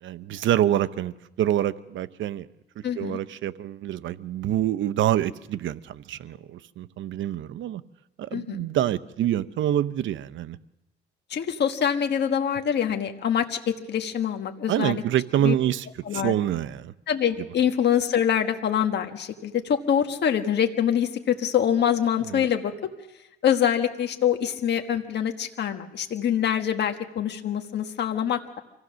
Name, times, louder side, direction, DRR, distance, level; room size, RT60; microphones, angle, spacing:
voice 1, 0.0-2.5 3.0-7.8 8.2-10.6 14.7-16.9 22.3-22.4, right 11 dB, 75° right, 0.8 m, -26 dB
voice 2, 2.8-3.2 8.3-8.6 11.3-15.0 15.4-15.5 16.0-16.3 17.1-22.7 23.4-28.6, left 9 dB, 60° left, 1.4 m, -25 dB
25.5 x 16.0 x 6.3 m
cardioid pair, 90°, 20 cm